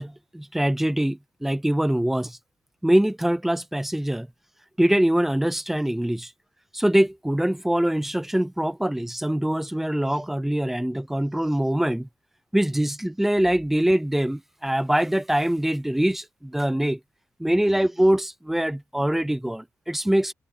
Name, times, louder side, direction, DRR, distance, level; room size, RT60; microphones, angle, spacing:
voice 1, 0.0-2.4 2.8-4.3 4.8-6.3 6.7-12.1 12.5-17.0 17.4-20.3, right 1 dB, 5° right, 0.4 m, -23 dB
wide cardioid pair, 135°, 6 cm